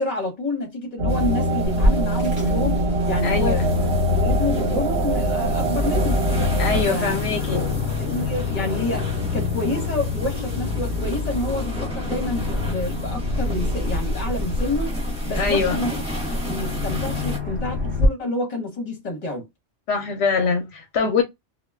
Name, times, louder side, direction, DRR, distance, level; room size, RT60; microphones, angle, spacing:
voice 1, 0.0-3.7 4.1-6.2 6.9-7.2 8.0-15.9 16.3-19.5, left 2 dB, 40° left, 1.0 m, -28 dB
sound 1, 1.0-6.8, equal, 65° right, 1.0 m, -22 dB
sound 2, 1.1-17.4, right 1 dB, 5° right, 0.8 m, -35 dB
Aircraft, 1.6-18.1, left 3 dB, 50° right, 1.2 m, -27 dB
voice 2, 3.2-3.7 6.6-7.7 15.4-15.8 19.9-21.2, left 5 dB, 70° left, 0.8 m, -23 dB
2.3 x 2.2 x 3.3 m
omnidirectional pair, 1.2 m